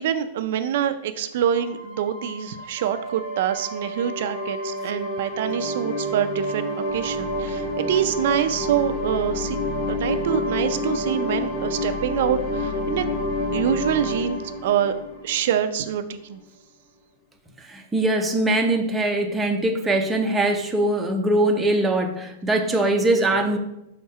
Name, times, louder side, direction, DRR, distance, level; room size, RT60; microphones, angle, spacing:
voice 1, 0.0-9.6 9.9-13.0 13.5-14.9 15.2-16.4, right 9 dB, 55° right, 9 dB, 0.4 m, -25 dB
sound 1, 1.5-16.0, left 1 dB, 30° left, 1.5 m, -29 dB
voice 2, 17.6-23.6, right 2 dB, 10° right, 3 dB, 0.6 m, -22 dB
5.8 x 4.2 x 4.7 m, 0.86 s
supercardioid pair, 160°, 0 cm